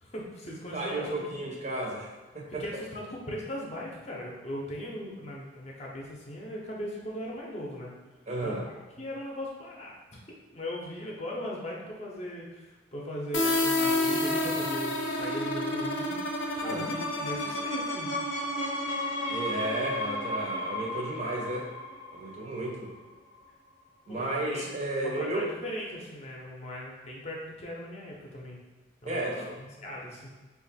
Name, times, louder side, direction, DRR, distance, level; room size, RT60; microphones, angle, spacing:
voice 1, 0.0-1.4 2.5-7.9 8.4-10.2 10.5-16.2 16.5-18.1 22.3-22.4 24.1-24.6 25.0-28.6 29.0-30.3, left 1 dB, 35° left, -3 dB, 0.6 m, -39 dB
voice 2, 0.7-2.1 2.3-2.6 8.3-8.6 16.6-16.9 19.3-21.7 22.1-22.9 24.1-25.5 29.1-29.5, right 1 dB, 35° right, -2 dB, 0.6 m, -33 dB
sound 1, 13.3-22.9, left 1 dB, 75° left, 0.6 m, -30 dB
2.9 x 2.5 x 4.0 m, 1.3 s
head